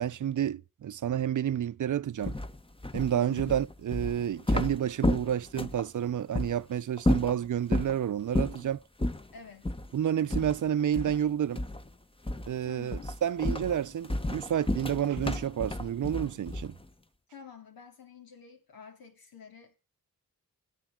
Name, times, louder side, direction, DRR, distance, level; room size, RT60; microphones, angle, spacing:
voice 1, 0.0-2.3 2.9-8.8 9.9-11.6 12.5-16.7, right 10 dB, 60° right, 0.6 m, -30 dB
sound 1, 2.2-5.9 6.3-6.5 7.0-8.0 8.3-8.7 9.0-9.2 9.6-9.9 10.3-11.3 11.6-11.9 12.3-12.6 12.9-16.8, left 1 dB, 15° left, 1.0 m, -31 dB
voice 2, 3.1-3.6 9.3-9.7 12.6-13.2 17.3-19.8, left 7 dB, 90° left, 2.5 m, -49 dB
21.0 x 8.3 x 3.7 m
cardioid pair, 50°, 35 cm